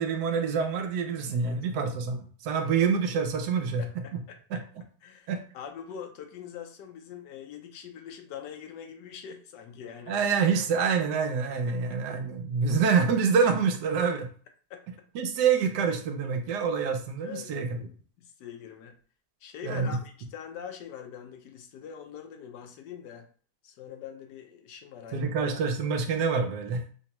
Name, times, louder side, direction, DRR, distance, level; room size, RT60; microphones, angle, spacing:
voice 1, 0.0-3.8 4.1-4.2 5.3-5.4 10.1-14.3 15.1-17.9 19.6-20.0 25.1-26.9, right 6 dB, 80° right, 5 dB, 1.3 m, -26 dB
voice 2, 3.8-4.6 5.0-10.2 11.7-11.8 14.7-14.8 17.2-17.5 18.2-19.0 19.4-23.3 23.6-25.3, left 8 dB, 85° left, 5 dB, 1.3 m, -43 dB
5.4 x 2.2 x 2.9 m, 0.43 s
omnidirectional pair, 1.8 m